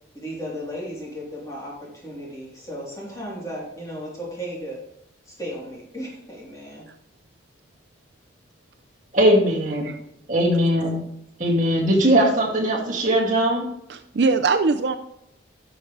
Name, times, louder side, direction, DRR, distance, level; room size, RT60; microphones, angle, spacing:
voice 1, 0.1-4.8 5.2-6.9, equal, 15° left, -5 dB, 3.3 m, -35 dB
voice 2, 9.1-9.9 10.3-11.0 11.4-13.7, right 1 dB, 40° right, -3 dB, 2.3 m, -20 dB
voice 3, 13.9-15.0, right 4 dB, 60° right, 8 dB, 0.5 m, -21 dB
11.5 x 6.6 x 3.2 m, 0.79 s
head